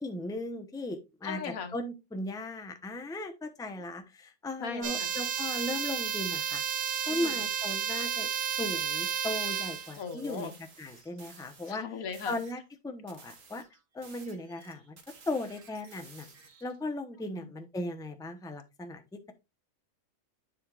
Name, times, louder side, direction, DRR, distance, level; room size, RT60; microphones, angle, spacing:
voice 1, 0.0-1.4 1.7-6.6 7.1-8.3 8.6-10.5 10.8-11.8 12.3-13.6 13.9-15.0 15.3-16.3 16.6-19.0, left 1 dB, 5° left, 0.7 m, -37 dB
voice 2, 1.2-1.8 4.6-5.1 7.1-7.5 10.0-10.5 11.7-12.4, left 6 dB, 85° left, 1.6 m, -38 dB
sound 1, 4.8-9.9, right 9 dB, 90° right, 1.4 m, -32 dB
sound 2, 9.3-11.8 12.1-12.6 13.1-16.8, right 5 dB, 65° right, 1.7 m, -54 dB
9.8 x 5.5 x 2.4 m
omnidirectional pair, 1.4 m